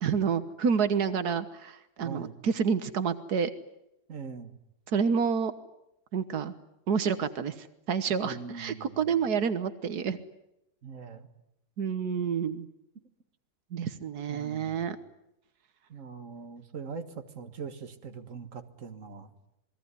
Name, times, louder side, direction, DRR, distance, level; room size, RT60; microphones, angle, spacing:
voice 1, 0.0-3.5 4.9-5.5 6.1-6.5 6.9-10.2 11.8-12.7 13.7-15.0, right 6 dB, 90° right, 11 dB, 1.8 m, -29 dB
voice 2, 2.0-2.4 4.1-4.5 8.2-9.2 10.8-11.3 14.3-14.9 15.9-19.3, right 5 dB, 55° right, 8 dB, 2.0 m, -42 dB
28.5 x 21.0 x 9.7 m, 0.84 s
omnidirectional pair, 1.6 m